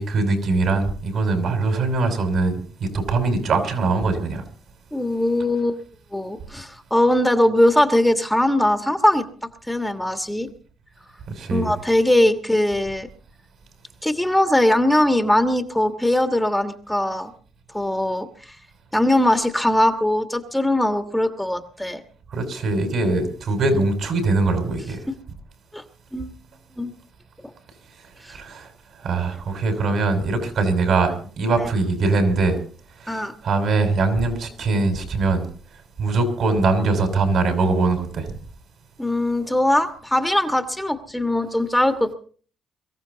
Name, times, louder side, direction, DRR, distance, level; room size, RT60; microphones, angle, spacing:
voice 1, 0.0-2.6 2.9-4.4 11.4-11.7 22.3-25.1 28.3-28.7 29.0-32.6 33.0-35.5 36.0-38.3, right 3 dB, 65° right, 6 dB, 5.6 m, -22 dB
voice 2, 4.9-5.8 6.1-9.3 9.7-10.5 11.5-13.1 14.0-17.3 17.7-18.6 18.9-22.0 25.1-25.2 25.7-25.8 26.1-26.3 26.8-26.9 28.3-28.4 33.1-33.3 39.0-42.1, left 1 dB, 5° left, 7 dB, 1.5 m, -20 dB
23.0 x 14.5 x 4.0 m, 0.43 s
cardioid pair, 90°, 0 cm